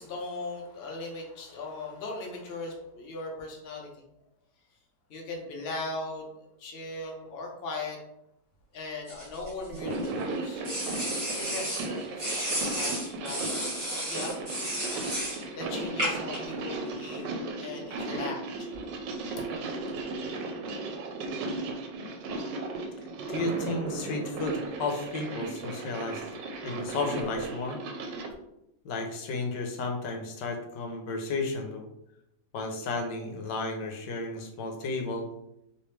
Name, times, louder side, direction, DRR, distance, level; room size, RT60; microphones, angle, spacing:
voice 1, 0.0-3.9 5.1-6.3 6.6-8.0 8.7-10.6 11.3-13.7 14.1-14.8 15.1-15.2 15.6-17.3 17.6-18.8 19.3-20.0, left 2 dB, 55° left, -1 dB, 0.7 m, -39 dB
sound 1, 9.1-10.1 10.6-11.9 12.2-15.4 16.0-16.4, right 1 dB, 25° right, 1.1 m, -32 dB
sound 2, 9.7-28.3, right 2 dB, 85° right, 1.3 m, -36 dB
voice 2, 23.3-26.2 26.6-27.8 28.8-31.9 32.5-35.3, left 3 dB, 80° left, 3 dB, 1.3 m, -33 dB
3.1 x 3.0 x 3.2 m, 0.81 s
omnidirectional pair, 1.9 m